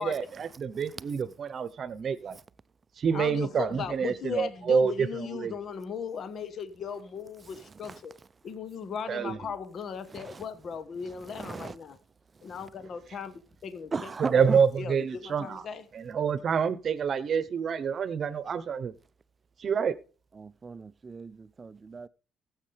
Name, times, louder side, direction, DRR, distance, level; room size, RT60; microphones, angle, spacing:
voice 1, 0.0-2.4 3.0-5.5 9.1-9.4 14.2-15.6 15.9-18.9 19.6-19.9, right 6 dB, 45° right, 0.9 m, -27 dB
voice 2, 0.7-1.1 2.3-2.4 7.5-8.0 10.1-10.4 11.0-11.8 12.3-12.7 13.9-14.6 20.3-22.1, right 4 dB, 30° right, 0.5 m, -38 dB
voice 3, 3.1-8.1 8.4-12.0 12.4-13.3 13.6-13.9 14.5-15.8, left 6 dB, 50° left, 1.2 m, -37 dB
15.5 x 7.3 x 3.4 m
cardioid pair, 95°, 0 cm